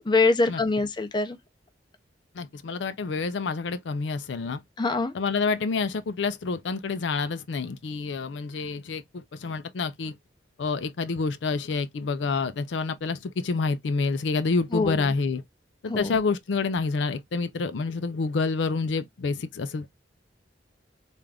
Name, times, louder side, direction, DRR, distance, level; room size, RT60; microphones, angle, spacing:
voice 1, 0.1-1.4 4.8-5.1 14.7-15.1 15.9-16.2, left 3 dB, 25° left, 0.6 m, -24 dB
voice 2, 2.3-4.6 5.1-10.1 10.6-15.4 15.8-19.9, left 4 dB, 80° left, 0.4 m, -28 dB
3.5 x 2.5 x 3.3 m
head